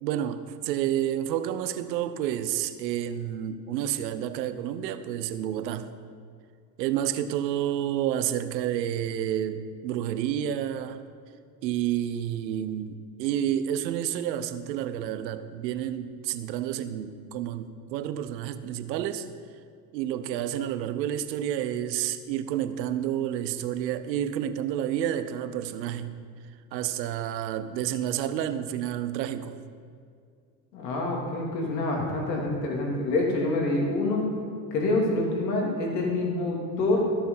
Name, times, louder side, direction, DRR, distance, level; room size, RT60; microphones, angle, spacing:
voice 1, 0.0-5.9 6.8-11.0 11.6-19.3 19.9-26.1 26.7-29.6, right 10 dB, 85° right, 12 dB, 0.8 m, -30 dB
voice 2, 30.7-34.2 34.7-37.0, left 2 dB, 85° left, 0 dB, 2.8 m, -26 dB
14.5 x 6.8 x 5.5 m, 2.2 s
hypercardioid pair, 85°, 49 cm